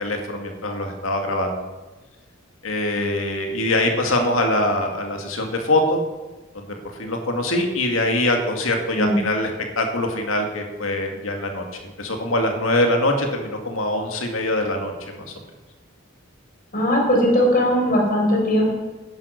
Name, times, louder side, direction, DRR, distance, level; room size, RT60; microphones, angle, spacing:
voice 1, 0.0-1.6 2.6-6.0 6.5-6.7 6.9-15.3, left 1 dB, 85° left, 3 dB, 2.0 m, -23 dB
voice 2, 16.7-18.7, equal, 45° left, -1 dB, 4.3 m, -19 dB
10.5 x 10.5 x 6.5 m, 1.2 s
head